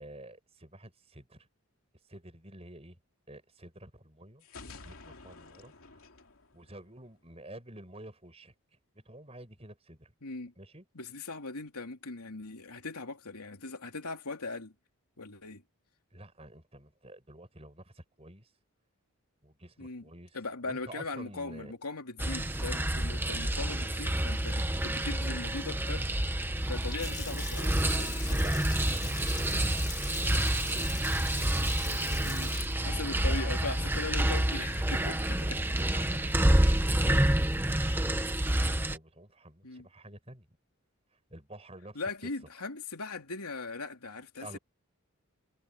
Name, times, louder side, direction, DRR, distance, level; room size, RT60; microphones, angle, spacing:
voice 1, 0.0-1.5 2.1-3.0 3.3-6.0 6.5-8.5 8.9-10.1 10.6-10.8 16.1-18.5 19.4-21.7 28.4-31.1 31.8-32.4 32.7-32.9 33.3-33.5 34.9-40.6 41.1-42.3 44.4-44.6, right 1 dB, 25° right, 5.7 m, -49 dB
sound 1, 4.4-7.3, left 3 dB, 70° left, 2.8 m, -50 dB
voice 2, 10.2-10.5 10.9-14.7 15.2-15.6 19.8-20.1 20.3-26.1 26.6-28.4 28.8-28.9 32.2-32.5 32.8-35.1 39.6-39.9 41.9-44.6, left 3 dB, 90° left, 3.1 m, -39 dB
sound 2, 22.2-39.0, right 1 dB, 10° right, 0.9 m, -28 dB
Water tap faucet / Sink (filling or washing) / Splash splatter, 26.8-34.7, left 6 dB, 20° left, 3.4 m, -44 dB
head